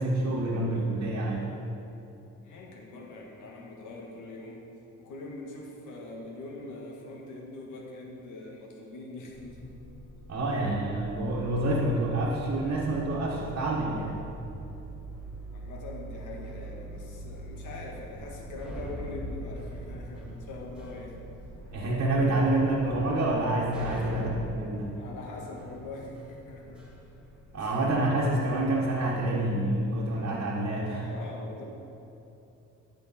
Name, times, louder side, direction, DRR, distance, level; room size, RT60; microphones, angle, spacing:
voice 1, 0.0-1.5 10.3-14.2 21.7-24.9 27.5-31.1, right 1 dB, 50° right, -6 dB, 1.5 m, -27 dB
voice 2, 2.4-4.6 5.0-9.7 15.5-21.3 23.8-24.1 25.0-26.8 27.5-27.8 31.0-31.6, left 2 dB, 80° left, 0 dB, 1.7 m, -43 dB
sound 1, 9.3-23.5, right 1 dB, 55° left, 2.2 m, -44 dB
sound 2, 16.1-29.8, equal, 5° right, 2.0 m, -45 dB
12.0 x 6.6 x 4.3 m, 2.8 s
cardioid pair, 90°, 30 cm